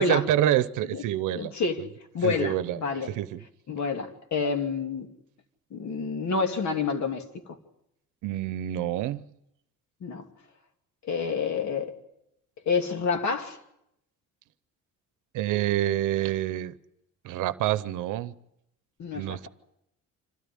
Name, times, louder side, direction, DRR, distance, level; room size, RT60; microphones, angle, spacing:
voice 1, 0.0-1.5 2.2-2.8 3.1-3.4 8.2-9.2 15.3-16.7 17.2-18.3 19.1-19.5, right 13 dB, 90° right, 0.8 m, -27 dB
voice 2, 1.4-1.8 2.1-3.1 3.7-5.1 5.7-7.2 10.0-10.2 11.0-11.9 12.7-13.6 19.0-19.4, left 4 dB, 65° left, 2.8 m, -28 dB
27.5 x 13.0 x 9.9 m
cardioid pair, 90°, 30 cm